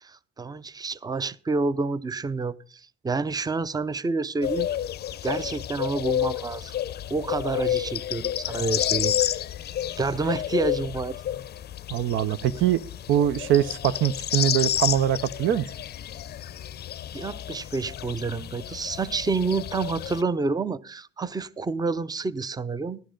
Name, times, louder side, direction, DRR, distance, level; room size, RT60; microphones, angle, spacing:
voice 1, 0.0-4.7 5.2-6.8 7.1-9.4 10.0-11.2 17.1-23.0, right 3 dB, 20° right, 0.6 m, -29 dB
sound 1, 4.4-20.2, left 11 dB, 55° left, 0.5 m, -30 dB
voice 2, 11.9-15.6, right 11 dB, 80° right, 0.6 m, -23 dB
14.0 x 11.5 x 3.8 m
cardioid pair, 90°, 20 cm